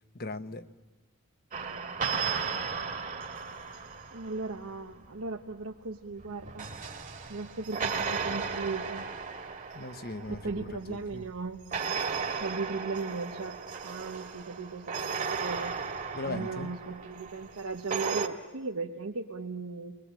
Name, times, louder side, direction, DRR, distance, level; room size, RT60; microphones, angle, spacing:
voice 1, 0.1-0.7 9.7-11.2 16.1-16.7, left 2 dB, 45° left, 10 dB, 1.1 m, -38 dB
sound 1, 1.5-4.7 6.2-11.1 11.7-18.3, right 5 dB, 40° right, 1.8 m, -35 dB
voice 2, 4.1-6.7 7.3-9.1 10.3-11.6 12.3-13.6 13.8-15.8 16.2-20.0, right 4 dB, 90° right, 1 dB, 1.2 m, -37 dB
30.0 x 21.5 x 9.0 m, 1.2 s
head